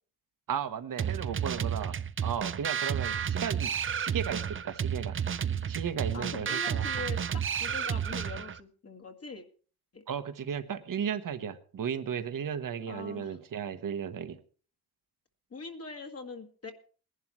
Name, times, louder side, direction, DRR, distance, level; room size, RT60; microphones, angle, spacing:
voice 1, 0.5-2.0 2.2-5.2 5.7-6.9 10.1-14.4, right 8 dB, 55° right, 9 dB, 1.2 m, -35 dB
sound 1, 1.0-8.6, right 8 dB, 35° right, 0.5 m, -32 dB
voice 2, 6.1-9.4 9.9-10.0 12.9-13.4 15.5-16.7, left 4 dB, 40° left, 3 dB, 1.8 m, -42 dB
21.0 x 11.0 x 3.1 m, 0.41 s
wide cardioid pair, 115°, 38 cm